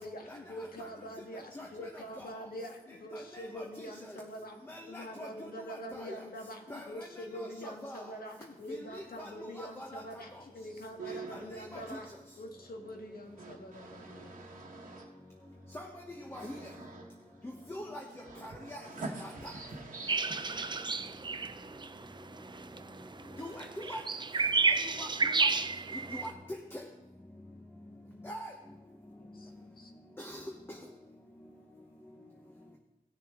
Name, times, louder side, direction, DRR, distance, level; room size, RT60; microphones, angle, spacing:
voice 1, 0.0-12.1 12.4-14.4 20.0-20.9 29.2-29.9, equal, 70° left, 1.5 m, -45 dB
voice 2, 4.7-5.3 6.0-6.1 6.7-6.8 7.6-8.0 9.2-9.3 9.6-9.9 15.7-15.8 16.3-16.6 17.4-18.0 18.4-18.5 23.4-24.0 25.0-25.1 26.1-26.3 28.2-28.4 30.2-30.4, left 1 dB, 15° left, 1.0 m, -42 dB
voice 3, 11.0-12.0 13.4-15.7 16.3-17.4 18.2-20.8, right 3 dB, 50° right, 1.3 m, -46 dB
sound 1, 20.1-26.3, right 4 dB, 30° right, 0.4 m, -31 dB
17.0 x 6.7 x 3.6 m
wide cardioid pair, 115°, 16 cm